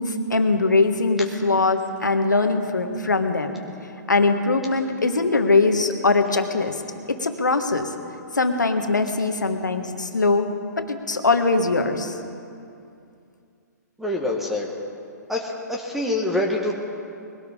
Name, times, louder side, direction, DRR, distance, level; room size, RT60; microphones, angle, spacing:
voice 1, 0.0-3.6 4.1-6.8 7.1-7.9 8.3-10.5 10.8-12.1, left 3 dB, 80° left, 6 dB, 1.4 m, -21 dB
voice 2, 14.0-14.7 15.3-16.7, left 2 dB, ahead, -1 dB, 1.5 m, -25 dB
21.5 x 17.0 x 3.7 m, 2.5 s
figure-of-eight pair, 120°, 10 cm